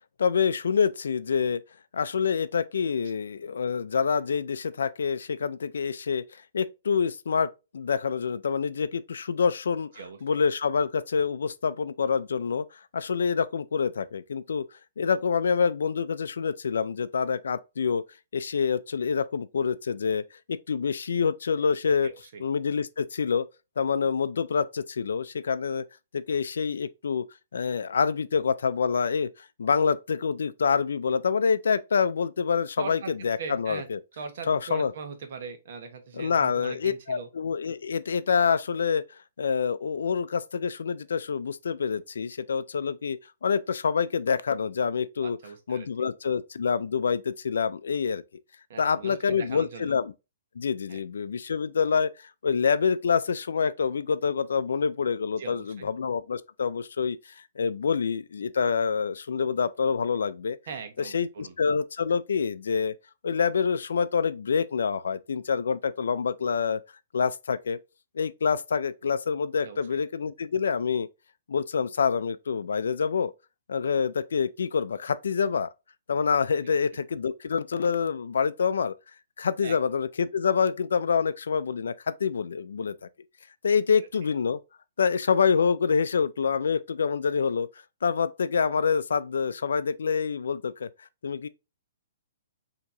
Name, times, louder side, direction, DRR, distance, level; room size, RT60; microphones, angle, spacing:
voice 1, 0.2-1.6 1.9-7.5 7.7-9.9 10.2-12.7 12.9-14.6 15.0-18.0 18.3-20.2 20.5-22.1 22.4-23.5 23.8-25.8 26.1-27.2 27.5-29.3 29.6-34.0 34.5-34.9 36.1-39.0 39.4-45.4 45.7-48.2 48.8-50.1 50.6-52.1 52.4-60.6 61.1-62.9 63.2-66.8 67.1-67.8 68.2-71.1 71.5-73.3 73.7-75.7 76.1-78.9 79.4-82.9 83.6-84.6 85.0-87.7 88.0-90.9 91.2-91.5, left 6 dB, 85° left, 0.4 m, -26 dB
voice 2, 22.0-22.4 32.8-33.1 33.4-33.9 34.1-37.3 45.2-45.9 48.7-49.9 50.9-51.0 55.4-55.9 60.7-61.5 69.6-70.0 76.6-76.8 79.6-79.8 83.9-84.0, right 5 dB, 55° right, 1.0 m, -40 dB
4.5 x 2.9 x 2.6 m
hypercardioid pair, 165°, 0 cm